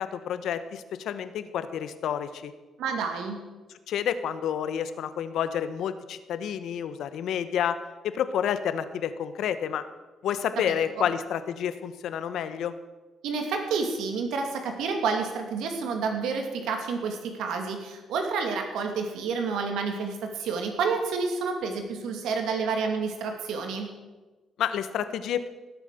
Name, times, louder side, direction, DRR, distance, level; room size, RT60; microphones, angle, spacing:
voice 1, 0.0-2.5 3.9-7.8 8.0-9.8 10.2-12.7 24.6-25.5, left 9 dB, 75° left, 12 dB, 1.0 m, -29 dB
voice 2, 2.8-3.4 13.2-23.9, right 5 dB, 85° right, 4 dB, 2.5 m, -29 dB
17.5 x 8.2 x 6.6 m, 1.2 s
cardioid pair, 90°, 0 cm